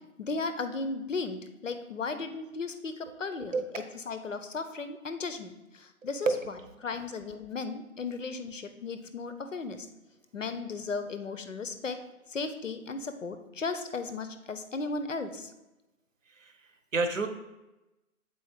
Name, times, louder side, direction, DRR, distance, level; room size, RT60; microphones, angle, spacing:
voice 1, 0.2-3.5 4.1-6.3 6.8-9.9 10.3-12.0 12.3-15.5, left 4 dB, 60° left, 9 dB, 0.7 m, -35 dB
voice 2, 6.3-6.7 16.3-16.5 16.9-17.3, right 3 dB, 60° right, 7 dB, 0.9 m, -29 dB
7.6 x 4.2 x 3.6 m, 0.99 s
figure-of-eight pair, 165°, 44 cm